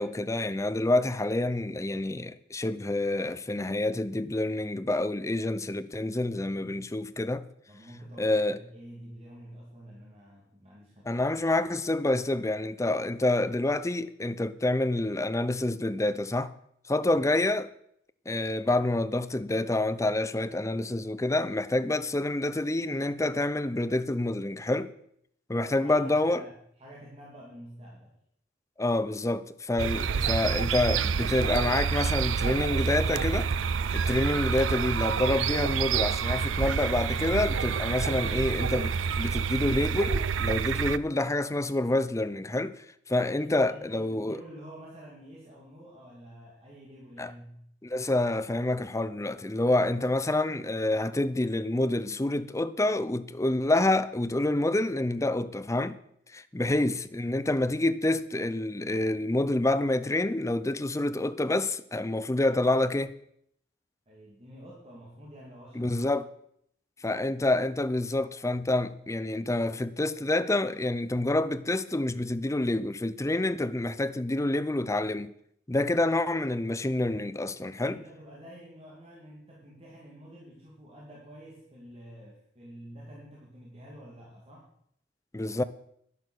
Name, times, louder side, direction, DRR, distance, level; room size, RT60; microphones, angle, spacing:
voice 1, 0.0-7.4 8.2-8.6 11.0-16.5 16.9-17.7 18.3-24.9 25.5-26.4 28.8-33.5 33.9-44.4 47.2-47.3 47.8-56.0 56.3-63.2 65.7-66.2 67.0-75.3 75.7-78.0 85.3-85.6, left 2 dB, 15° left, 0.6 m, -27 dB
voice 2, 7.7-11.4 17.1-17.3 25.5-28.2 43.4-47.6 64.1-66.1 77.8-84.7, equal, 35° right, 2.5 m, -48 dB
sound 1, 29.8-41.0, right 6 dB, 85° right, 0.5 m, -28 dB
11.0 x 10.5 x 6.3 m
head